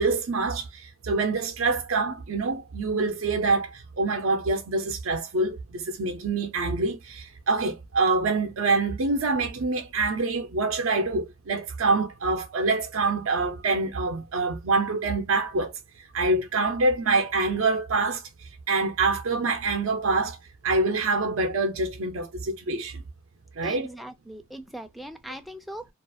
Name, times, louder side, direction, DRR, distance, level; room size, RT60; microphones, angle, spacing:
voice 1, 0.0-15.7 16.1-18.3 18.7-20.4 20.6-23.0 23.6-23.9, right 3 dB, 80° right, 0.5 m, -25 dB
voice 2, 23.6-25.9, right 1 dB, ahead, 0.3 m, -40 dB
2.4 x 2.3 x 2.6 m
head